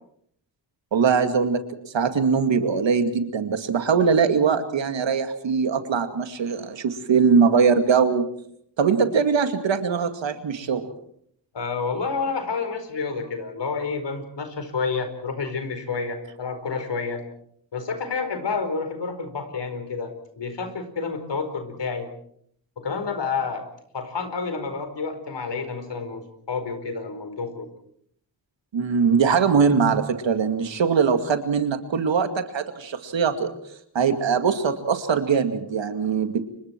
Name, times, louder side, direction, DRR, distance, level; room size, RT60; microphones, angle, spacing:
voice 1, 0.9-8.3 8.8-10.8 28.7-33.5 33.9-36.4, right 6 dB, 85° right, 8 dB, 2.3 m, -21 dB
voice 2, 11.5-17.2 17.7-22.1 22.8-23.7 23.9-27.7, left 4 dB, 70° left, 8 dB, 4.7 m, -29 dB
29.5 x 25.0 x 4.6 m, 0.67 s
cardioid pair, 55°, 44 cm